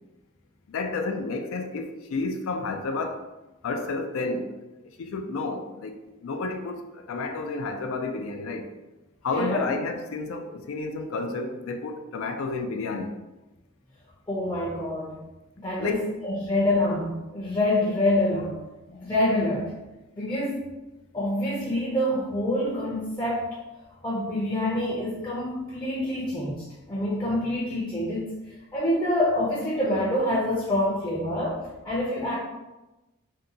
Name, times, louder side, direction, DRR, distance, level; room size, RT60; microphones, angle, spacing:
voice 1, 0.7-3.2 3.6-4.5 4.8-5.9 6.2-8.7 9.2-13.1 15.8-16.1, left 3 dB, 70° left, 0.4 m, -31 dB
voice 2, 9.3-9.8 14.3-15.2 15.6-16.0 16.2-18.6 18.9-19.7 20.2-20.6 21.1-23.6 24.0-28.2 28.7-32.4, left 1 dB, 20° left, 0.6 m, -26 dB
2.7 x 2.2 x 3.7 m
head